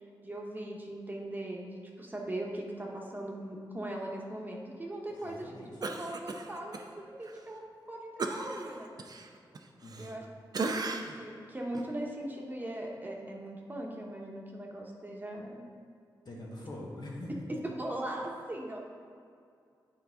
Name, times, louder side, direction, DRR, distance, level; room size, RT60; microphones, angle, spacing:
voice 1, 0.2-5.5 5.8-7.6 7.9-8.9 10.0-10.2 10.8-15.6 17.6-18.8, right 1 dB, 20° right, -1 dB, 1.1 m, -39 dB
voice 2, 5.1-5.9 9.8-10.1 16.2-17.5, left 1 dB, 60° left, -3 dB, 1.5 m, -43 dB
Cough, 5.8-6.9 7.2-7.4 8.2-10.2 10.5-11.3 11.7-11.9, right 3 dB, 50° right, 0.6 m, -36 dB
8.7 x 4.7 x 3.7 m, 2.3 s
cardioid pair, 65°, 8 cm